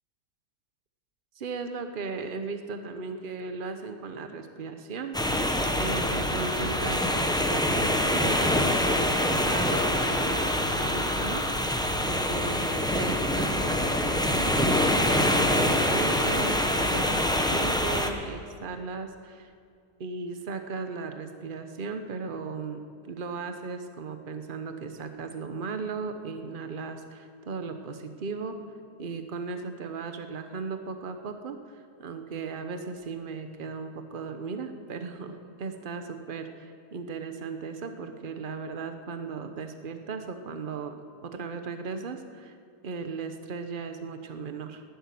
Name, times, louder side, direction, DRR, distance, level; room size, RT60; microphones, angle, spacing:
voice 1, 1.4-11.4 12.0-19.5 20.0-28.6 29.0-42.6 42.8-44.8, right 4 dB, 35° right, 7 dB, 1.0 m, -36 dB
sound 1, 5.1-18.1, left 1 dB, 5° left, 0.3 m, -25 dB
11.5 x 11.5 x 9.4 m, 2.3 s
omnidirectional pair, 1.8 m